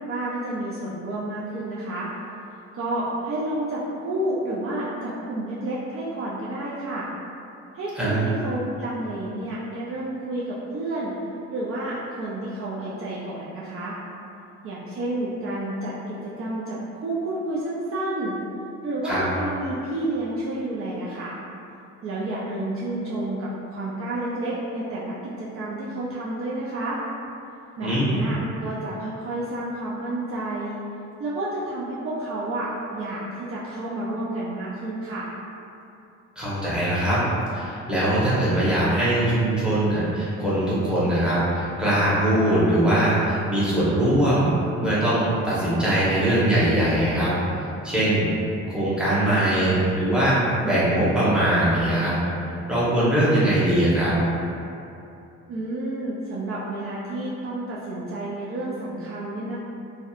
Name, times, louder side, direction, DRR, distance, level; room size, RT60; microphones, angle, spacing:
voice 1, 0.1-2.1 2.7-7.1 7.7-11.1 11.5-14.0 14.6-18.4 18.8-21.4 22.0-27.0 27.8-30.8 31.2-35.3 55.5-59.6, right 1 dB, 50° right, -7 dB, 0.4 m, -30 dB
voice 2, 27.8-28.2 36.4-37.2 37.5-44.5 44.8-47.3 47.8-48.3 48.7-52.1 52.7-54.1, right 1 dB, 5° right, -11 dB, 0.9 m, -21 dB
2.7 x 2.1 x 2.3 m, 2.6 s
cardioid pair, 90°, 30 cm